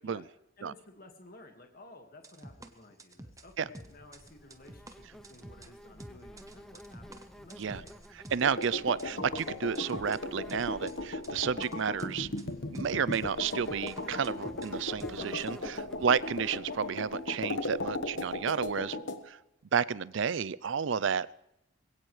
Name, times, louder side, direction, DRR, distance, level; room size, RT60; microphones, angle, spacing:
voice 1, 0.6-8.0, left 2 dB, 45° left, 4 dB, 1.9 m, -54 dB
sound 1, 2.2-8.7 9.0-15.5, right 1 dB, 15° right, 1.0 m, -49 dB
Insect, 3.8-18.9, equal, ahead, 0.7 m, -52 dB
voice 2, 8.3-12.3 12.7-19.0 19.3-19.4 19.7-21.3, right 6 dB, 65° right, 19 dB, 0.5 m, -31 dB
sound 2, 8.4-19.2, left 2 dB, 65° left, 1.3 m, -37 dB
21.0 x 17.0 x 3.3 m, 0.84 s
head